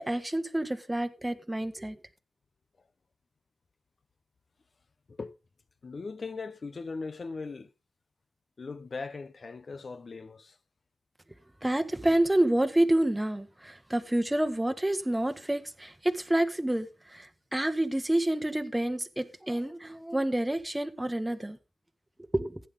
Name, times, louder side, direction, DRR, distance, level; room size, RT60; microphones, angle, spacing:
voice 1, 0.0-2.0 11.6-21.6 22.3-22.6, right 1 dB, 10° right, 1.4 m, -28 dB
voice 2, 5.8-7.7 8.6-10.6, left 4 dB, 50° left, 1.1 m, -39 dB
15.5 x 9.3 x 3.7 m
wide cardioid pair, 95°, 0 cm